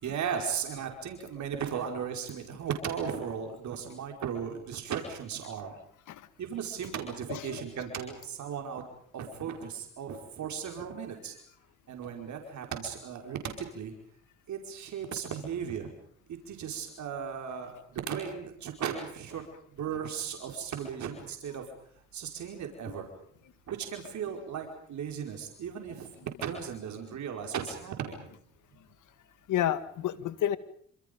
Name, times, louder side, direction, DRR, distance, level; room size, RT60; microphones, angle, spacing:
voice 1, 0.0-5.7 6.4-8.8 9.1-11.3 11.9-13.9 14.5-15.9 16.5-19.4 19.8-21.6 22.1-23.0 23.7-26.1 26.4-28.2, right 7 dB, 70° right, 4 dB, 5.0 m, -36 dB
voice 2, 7.3-7.6 22.8-23.0 27.1-27.2 29.5-30.6, left 11 dB, 80° left, 13 dB, 2.0 m, -30 dB
28.0 x 27.0 x 5.3 m, 0.62 s
cardioid pair, 90°, 30 cm